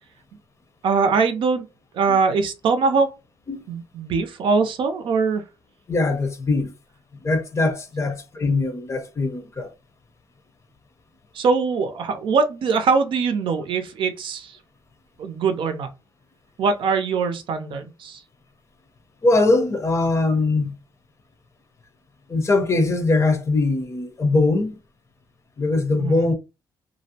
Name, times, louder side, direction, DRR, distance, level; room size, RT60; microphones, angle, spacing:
voice 1, 0.8-1.7 1.9-3.1 3.7-5.4 11.3-14.6 15.2-15.9 16.6-18.2 26.0-26.3, right 5 dB, 65° right, 0.5 m, -22 dB
voice 2, 5.9-6.7 7.2-9.7 19.2-20.7 22.3-24.8 25.6-26.3, left 3 dB, 30° left, 0.6 m, -21 dB
2.5 x 2.0 x 2.7 m
cardioid pair, 90°, 9 cm